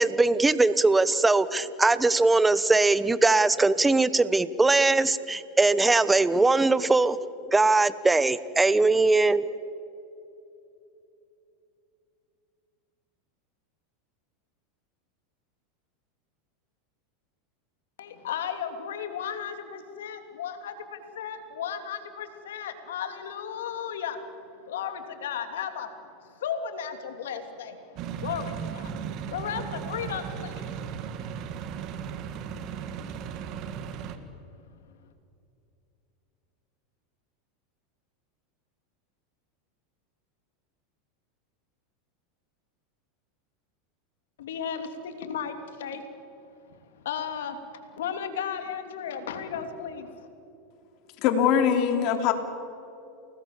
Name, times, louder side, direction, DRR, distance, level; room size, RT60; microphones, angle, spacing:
voice 1, 0.0-7.2 7.5-9.5, right 3 dB, 10° right, 16 dB, 1.0 m, -21 dB
voice 2, 18.0-24.2 24.6-25.9 26.2-30.9 32.2-33.6 44.4-46.0 47.0-47.6 47.9-50.3, left 8 dB, 85° left, 7 dB, 2.9 m, -35 dB
sound 1, 28.0-34.2, right 8 dB, 50° right, 2.0 m, -36 dB
voice 3, 51.2-52.3, left 8 dB, 55° left, 6 dB, 3.3 m, -22 dB
30.0 x 20.0 x 7.3 m, 2.8 s
supercardioid pair, 120°, 0 cm